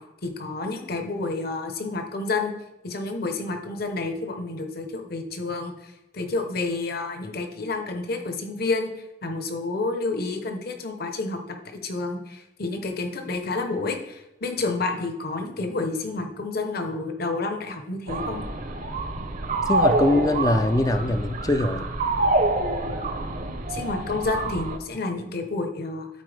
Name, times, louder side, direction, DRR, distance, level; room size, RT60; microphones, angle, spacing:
voice 1, 0.2-2.5 2.8-8.9 9.2-11.6 11.8-18.4 23.7-26.1, left 3 dB, 55° left, 5 dB, 0.9 m, -29 dB
sound 1, 18.1-24.8, right 2 dB, 45° right, 0.7 m, -26 dB
voice 2, 19.7-21.9, left 1 dB, 20° left, 9 dB, 0.4 m, -22 dB
12.5 x 4.3 x 3.4 m, 0.93 s
head